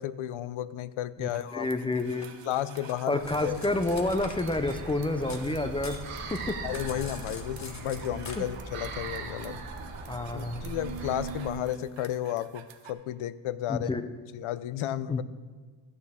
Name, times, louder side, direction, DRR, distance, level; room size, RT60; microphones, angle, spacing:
voice 1, 0.0-1.7 2.4-3.6 6.6-9.6 10.3-13.9 14.3-15.2, left 12 dB, 75° left, 17 dB, 0.5 m, -33 dB
voice 2, 1.2-2.3 3.1-6.5 8.4-8.5 10.1-10.7 13.7-14.1 15.1-15.2, left 2 dB, 10° left, 9 dB, 0.4 m, -29 dB
sound 1, 1.3-12.9, right 7 dB, 65° right, 0.9 m, -46 dB
Cutlery silverware, 2.2-5.5 5.8-8.4, left 4 dB, 35° left, 0.9 m, -45 dB
sound 2, 3.2-11.5, right 3 dB, 90° right, 1.4 m, -40 dB
14.0 x 8.5 x 3.5 m, 1.5 s
wide cardioid pair, 145°, 49 cm